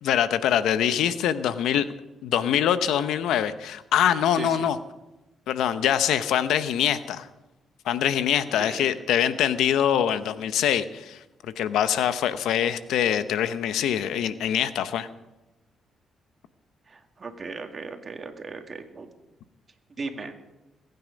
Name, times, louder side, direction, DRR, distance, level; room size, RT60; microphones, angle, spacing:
voice 1, 0.0-1.9 2.2-4.8 5.5-7.3 7.8-15.1, left 10 dB, 85° left, 12 dB, 0.8 m, -24 dB
voice 2, 16.9-19.1 20.0-20.3, right 4 dB, 40° right, 5 dB, 2.0 m, -37 dB
21.5 x 9.4 x 5.2 m, 1.0 s
cardioid pair, 75°, 0 cm